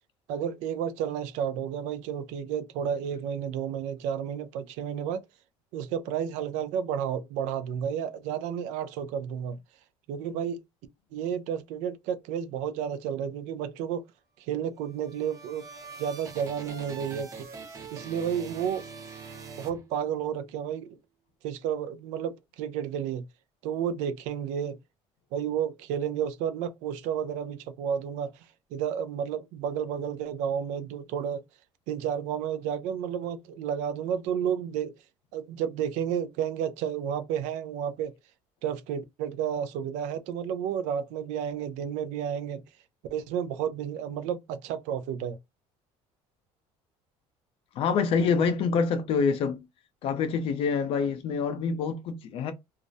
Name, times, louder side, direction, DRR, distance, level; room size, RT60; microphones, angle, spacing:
voice 1, 0.3-5.2 5.7-9.6 10.1-10.6 11.1-14.0 14.4-15.7 16.0-17.3 17.9-18.9 19.6-21.0 21.4-23.2 23.6-24.8 25.3-28.5 28.7-31.4 31.9-35.0 35.3-38.1 38.6-42.6 43.1-45.4, right 8 dB, 90° right, 0.4 m, -31 dB
sound 1, 14.8-20.4, right 4 dB, 25° right, 0.6 m, -44 dB
voice 2, 47.7-49.7 50.0-52.5, left 5 dB, 50° left, 0.5 m, -26 dB
2.4 x 2.0 x 2.6 m
cardioid pair, 155°, 12 cm